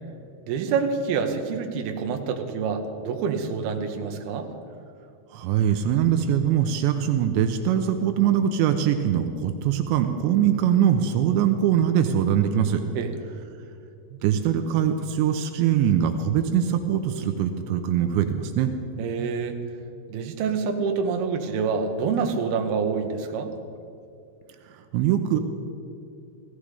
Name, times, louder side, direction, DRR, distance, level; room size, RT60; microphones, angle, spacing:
voice 1, 0.5-4.5 13.0-13.1 19.0-19.6 20.1-23.5, right 5 dB, 70° right, 4 dB, 2.7 m, -27 dB
voice 2, 5.3-12.8 14.2-18.7 24.9-25.4, right 9 dB, 85° right, 7 dB, 2.9 m, -22 dB
16.5 x 15.0 x 5.0 m, 2.5 s
omnidirectional pair, 5.2 m